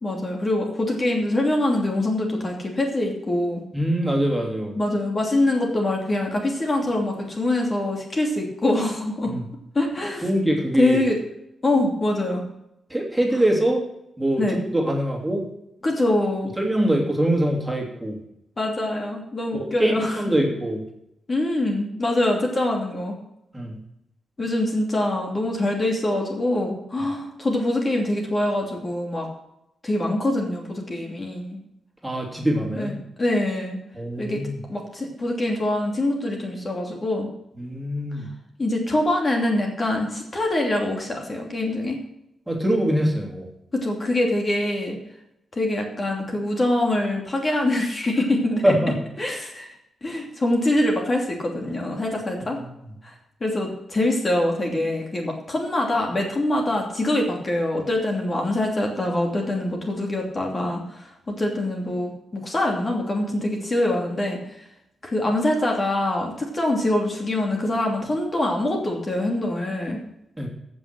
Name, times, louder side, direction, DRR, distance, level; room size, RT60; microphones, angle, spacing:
voice 1, 0.0-3.6 4.8-9.3 9.7-10.3 10.8-11.2 11.6-12.4 14.4-14.6 15.8-16.5 18.6-20.2 21.3-23.2 24.4-29.3 29.8-31.6 32.7-33.8 34.2-34.4 34.7-37.3 38.6-42.0 43.7-45.0 45.5-48.7 49.2-49.7 50.0-52.6 53.0-53.1 53.4-64.6 65.0-70.0, left 1 dB, 30° left, 1 dB, 2.8 m, -24 dB
voice 2, 3.7-4.8 9.2-9.4 10.2-11.0 12.9-13.8 14.2-15.5 16.6-18.2 19.8-20.8 23.5-23.8 32.0-32.9 33.9-34.5 37.6-38.3 42.5-43.5 48.6-49.0 70.4-70.5, right 1 dB, 10° right, 0 dB, 3.1 m, -23 dB
14.5 x 6.3 x 6.1 m, 0.83 s
cardioid pair, 100°, 0 cm